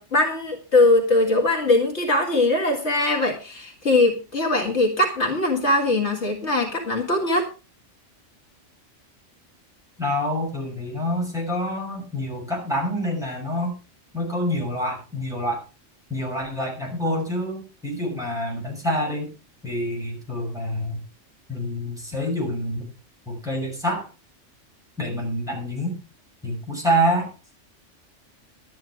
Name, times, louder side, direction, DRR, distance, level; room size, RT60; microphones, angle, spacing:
voice 1, 0.0-7.5, left 2 dB, 60° left, 1 dB, 2.4 m, -21 dB
voice 2, 10.0-13.7 14.1-15.6 16.1-19.3 19.6-21.0 21.5-22.9 23.3-24.1 25.0-26.0 26.4-27.3, equal, ahead, -2 dB, 6.4 m, -27 dB
12.5 x 10.0 x 4.7 m, 0.33 s
omnidirectional pair, 1.3 m